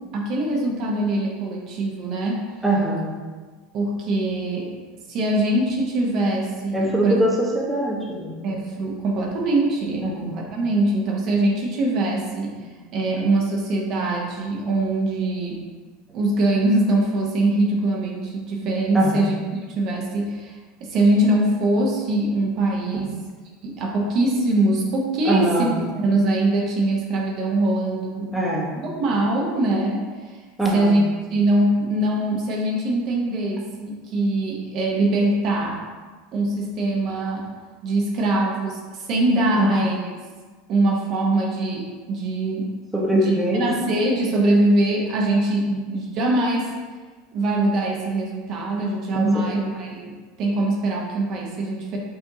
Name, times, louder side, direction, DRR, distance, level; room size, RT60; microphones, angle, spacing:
voice 1, 0.1-2.4 3.7-4.7 5.1-7.2 8.4-12.6 12.9-15.6 16.1-20.5 20.8-23.1 23.6-25.7 25.9-28.3 28.8-30.4 30.7-31.0 31.3-35.8 36.3-37.5 37.8-40.0 40.7-42.7 43.1-46.7 47.3-50.1 50.4-52.0, right 2 dB, 55° right, -2 dB, 0.7 m, -22 dB
voice 2, 2.6-3.2 6.7-8.4 10.0-10.3 12.6-12.7 18.9-19.2 25.2-25.8 28.3-28.8 30.6-31.0 39.5-39.7 42.9-43.7 45.7-45.8 49.1-49.7, right 1 dB, 5° right, -4 dB, 0.8 m, -23 dB
4.7 x 2.7 x 2.7 m, 1.4 s
hypercardioid pair, 85°, 0 cm